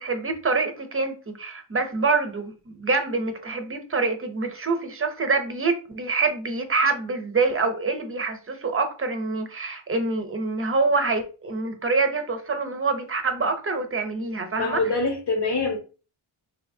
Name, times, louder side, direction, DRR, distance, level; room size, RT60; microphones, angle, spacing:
voice 1, 0.0-14.8, right 3 dB, 25° right, 0.7 m, -26 dB
voice 2, 14.6-15.8, left 3 dB, 55° left, 0.9 m, -24 dB
3.8 x 2.8 x 2.6 m
wide cardioid pair, 105°, 50 cm